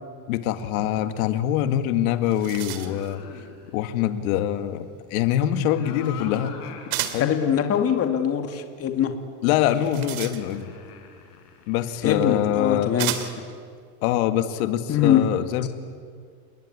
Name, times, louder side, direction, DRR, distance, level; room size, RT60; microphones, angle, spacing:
voice 1, 0.3-3.2 3.7-6.6 7.1-7.3 9.4-10.7 11.7-12.9 14.0-15.7, left 11 dB, 65° left, 9 dB, 2.0 m, -24 dB
sound 1, 1.8-1.9 2.1-3.1 6.9-7.4 9.6-10.8 11.9-12.0 13.0-13.5, right 13 dB, 65° right, 2.7 m, -32 dB
sound 2, 2.7-3.8 5.3-7.1 7.6-7.7 9.6-12.2, left 8 dB, 85° left, 4.5 m, -42 dB
voice 2, 7.2-9.1 12.0-13.3 14.9-15.2, left 9 dB, 30° left, 5 dB, 2.5 m, -22 dB
29.0 x 21.0 x 9.7 m, 2.1 s
supercardioid pair, 140°, 45 cm